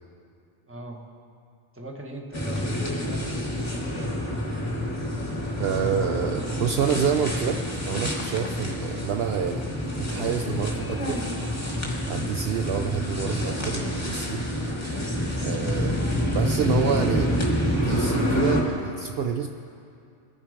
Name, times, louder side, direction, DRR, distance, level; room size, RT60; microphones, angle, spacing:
voice 1, 0.7-1.0 1.7-3.4 12.8-13.1, right 1 dB, 10° right, 1 dB, 1.1 m, -39 dB
sound 1, 2.3-18.6, equal, 15° left, 1.6 m, -27 dB
voice 2, 5.6-7.6 7.9-9.7 10.0-11.2 12.1-14.4 15.4-16.0 16.3-17.3 17.7-19.5, right 7 dB, 65° right, 5 dB, 0.7 m, -28 dB
21.5 x 7.3 x 5.0 m, 2.4 s
omnidirectional pair, 1.2 m